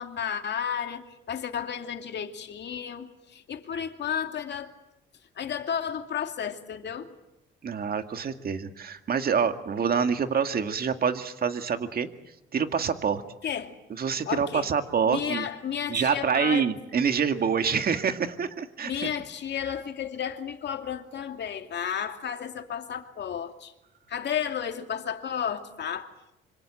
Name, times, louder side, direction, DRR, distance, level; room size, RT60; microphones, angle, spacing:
voice 1, 0.0-4.8 5.4-7.1 13.4-13.7 14.3-14.7 15.1-16.7 18.8-23.7 24.1-26.1, left 8 dB, 60° left, 2.5 m, -32 dB
voice 2, 7.6-12.1 12.5-13.2 13.9-15.5 15.9-19.1 19.6-19.7, right 6 dB, 50° right, 2.2 m, -26 dB
26.0 x 25.0 x 7.9 m
cardioid pair, 90°, 20 cm